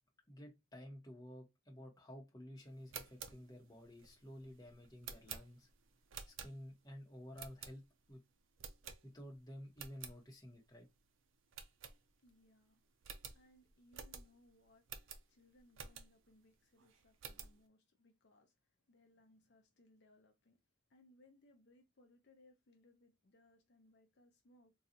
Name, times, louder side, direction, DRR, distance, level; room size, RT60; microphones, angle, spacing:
voice 1, 0.3-5.7 6.3-7.8 8.1-8.2 9.0-10.9, equal, 20° left, 0.9 m, -53 dB
sound 1, 2.7-6.9 7.3-8.1 8.6-9.4 9.7-10.2 10.6-10.7 11.0-11.1 11.5-12.4 12.7-12.8 13.0-16.3 16.8-17.6, right 7 dB, 70° right, 0.5 m, -51 dB
voice 2, 12.2-12.8 13.3-20.6 20.9-24.7, left 1 dB, 55° left, 0.5 m, -68 dB
3.8 x 2.3 x 2.7 m
head